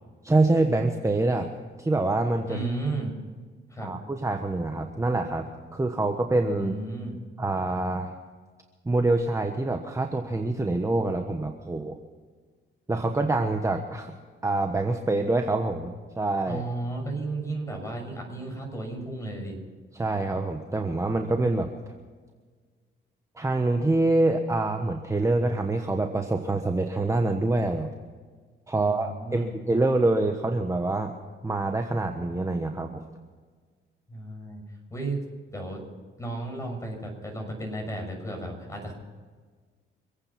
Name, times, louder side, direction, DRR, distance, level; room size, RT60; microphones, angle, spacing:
voice 1, 0.2-2.6 3.8-6.7 7.4-8.2 8.8-12.0 12.9-14.1 14.4-16.6 19.9-21.7 23.4-27.9 28.7-31.1 31.4-33.0, right 2 dB, 15° right, 4 dB, 1.3 m, -26 dB
voice 2, 2.5-3.1 3.7-3.9 6.6-7.2 16.5-19.6 28.7-29.5 34.1-34.6 34.9-35.2 35.5-35.8 36.2-38.9, right 2 dB, 15° left, 2 dB, 6.5 m, -33 dB
26.5 x 9.0 x 6.0 m, 1.5 s
cardioid pair, 90°, 20 cm